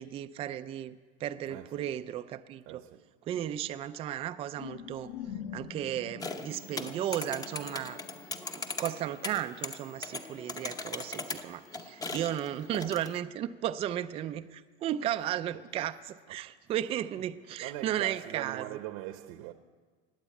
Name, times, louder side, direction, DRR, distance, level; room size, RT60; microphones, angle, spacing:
voice 1, 0.0-2.8 3.2-5.1 5.5-8.0 8.5-18.7, right 11 dB, 20° right, 0.3 m, -35 dB
voice 2, 1.4-2.0 2.6-3.1 4.9-5.1 15.2-15.3 15.5-16.0 16.3-19.5, right 14 dB, 60° right, 0.9 m, -44 dB
sound 1, 4.6-9.1, left 8 dB, 65° left, 1.6 m, -45 dB
sound 2, 6.2-13.2, left 3 dB, 10° left, 0.7 m, -40 dB
19.5 x 8.0 x 8.3 m
supercardioid pair, 145°, 31 cm